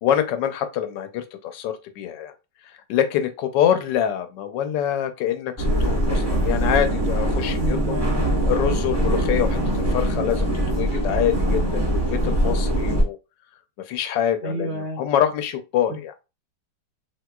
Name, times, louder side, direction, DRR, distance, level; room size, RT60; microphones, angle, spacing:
voice 1, 0.0-2.3 2.9-8.0 8.5-12.0 12.2-13.2 13.9-16.1, left 10 dB, 85° left, 1.2 m, -25 dB
sound 1, 5.6-13.0, right 1 dB, 25° right, 0.6 m, -22 dB
voice 2, 7.5-8.4 14.4-15.0 15.9-16.0, right 2 dB, 80° right, 0.6 m, -30 dB
3.4 x 2.8 x 2.2 m
omnidirectional pair, 1.9 m